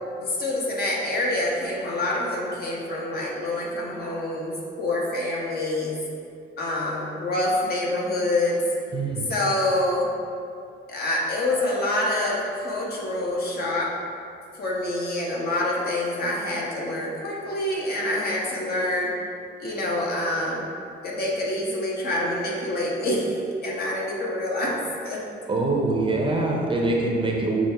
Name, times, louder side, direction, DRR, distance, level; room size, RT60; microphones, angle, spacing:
voice 1, 0.2-6.0 6.6-8.6 9.3-10.1 10.9-13.9 14.5-19.1 19.6-20.7 21.0-24.8 25.0-25.2, left 1 dB, 50° left, -4 dB, 1.0 m, -26 dB
voice 2, 8.9-9.3 25.5-27.7, right 2 dB, 25° right, -1 dB, 0.6 m, -24 dB
6.1 x 2.4 x 3.4 m, 2.4 s
cardioid pair, 90°, 20 cm